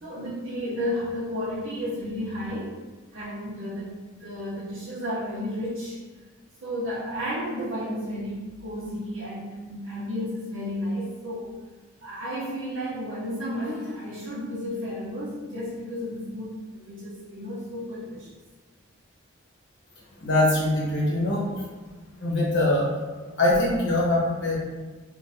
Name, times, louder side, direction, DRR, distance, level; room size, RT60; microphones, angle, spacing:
voice 1, 0.0-2.8 3.1-6.0 6.6-11.5 12.0-18.3, equal, 70° right, -9 dB, 0.7 m, -32 dB
voice 2, 20.2-21.4 22.2-22.9 23.4-24.6, left 1 dB, 55° left, -5 dB, 1.0 m, -22 dB
3.7 x 2.6 x 2.6 m, 1.3 s
head